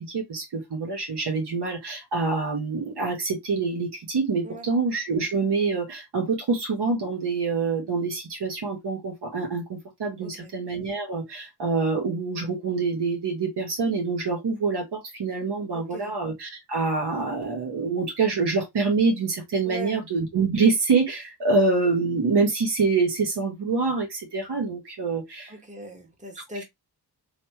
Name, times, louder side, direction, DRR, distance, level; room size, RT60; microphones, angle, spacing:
voice 1, 0.0-25.5, right 4 dB, 85° right, 1.6 m, -26 dB
voice 2, 10.2-10.5 15.7-16.1 19.6-20.0 25.5-26.6, right 1 dB, 20° right, 1.4 m, -40 dB
3.2 x 3.0 x 2.9 m
wide cardioid pair, 95°, 40 cm